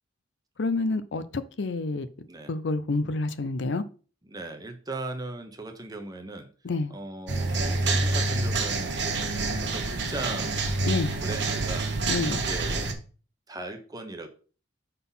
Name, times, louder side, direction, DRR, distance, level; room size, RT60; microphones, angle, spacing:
voice 1, 0.6-2.1 2.5-3.8 6.6-6.9 10.9-11.2 12.1-12.4, left 3 dB, 65° left, 0.5 m, -28 dB
voice 2, 4.2-6.5 6.9-10.6 11.2-11.9 12.3-12.9 13.5-14.3, right 2 dB, 20° right, 1.0 m, -38 dB
sound 1, 7.3-12.9, right 3 dB, 65° right, 1.1 m, -27 dB
5.6 x 4.1 x 5.6 m
head